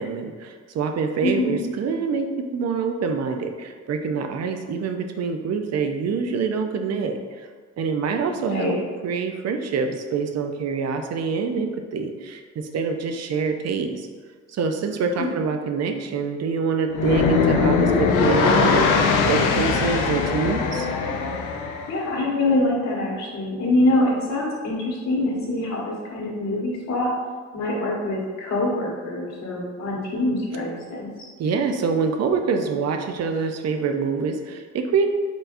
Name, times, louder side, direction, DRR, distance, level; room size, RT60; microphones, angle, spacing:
voice 1, 0.0-2.3 2.5-7.5 7.8-8.7 9.0-14.1 14.5-20.9 31.4-35.1, right 5 dB, 60° right, 6 dB, 0.6 m, -25 dB
voice 2, 1.2-1.6 8.4-8.8 15.1-15.3 21.9-27.1 27.5-31.1, left 2 dB, 65° left, -3 dB, 1.4 m, -24 dB
sound 1, 16.9-22.0, left 4 dB, 85° left, 0.6 m, -21 dB
4.6 x 4.1 x 2.6 m, 1.5 s
cardioid pair, 90°, 30 cm